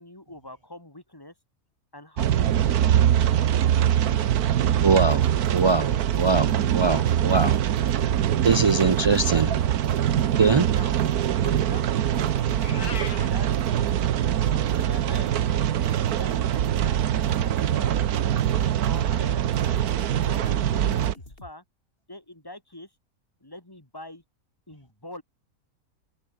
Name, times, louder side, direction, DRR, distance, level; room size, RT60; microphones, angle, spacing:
voice 1, 0.0-1.3 1.9-3.6 10.7-11.0 11.4-13.9 14.5-17.9 18.9-21.6 22.1-22.9 23.4-24.2 24.7-25.2, left 1 dB, 15° left, 2.2 m, -44 dB
sound 1, 2.2-21.1, right 10 dB, 85° right, 1.4 m, -23 dB
voice 2, 4.8-7.6 8.4-9.6 10.3-10.7, right 4 dB, 45° right, 0.3 m, -22 dB
sound 2, 5.1-21.5, left 2 dB, 40° left, 4.8 m, -49 dB
Meow, 12.5-13.3, left 5 dB, 80° left, 2.5 m, -36 dB
omnidirectional pair, 1.5 m